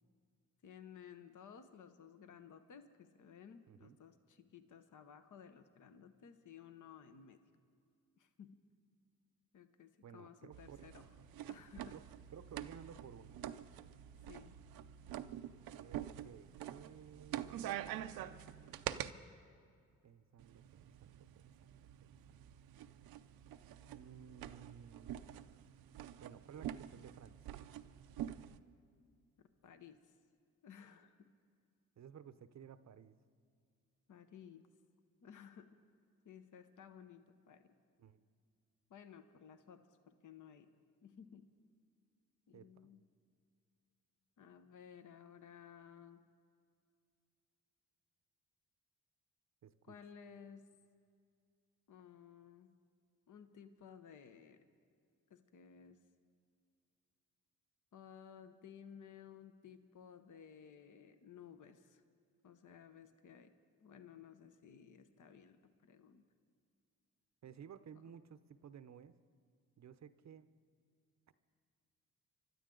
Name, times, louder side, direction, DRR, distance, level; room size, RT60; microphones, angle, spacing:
voice 1, 0.6-7.4 8.2-8.7 9.5-11.0 11.5-12.0 14.3-14.6 29.6-30.1 30.6-31.3 34.1-34.7 35.2-35.8 36.2-37.8 38.9-40.7 41.0-41.5 42.5-43.0 44.4-46.2 49.8-50.7 51.9-52.7 53.3-54.6 55.3-56.0 57.9-62.0 62.4-63.5 63.8-66.3, left 8 dB, 60° left, 9 dB, 1.0 m, -57 dB
voice 2, 3.7-4.0 10.0-10.9 11.9-12.0 12.3-13.4 15.7-18.9 20.0-22.5 23.9-25.2 26.2-27.5 32.0-33.2 38.0-38.2 42.5-42.9 49.6-50.0 67.4-69.2 69.8-70.5 71.3-71.4, right 8 dB, 50° right, 13 dB, 0.7 m, -56 dB
sound 1, 10.5-19.1 20.4-28.6, right 11 dB, 90° right, 0.6 m, -47 dB
25.0 x 12.5 x 3.8 m, 2.3 s
cardioid pair, 70°, 35 cm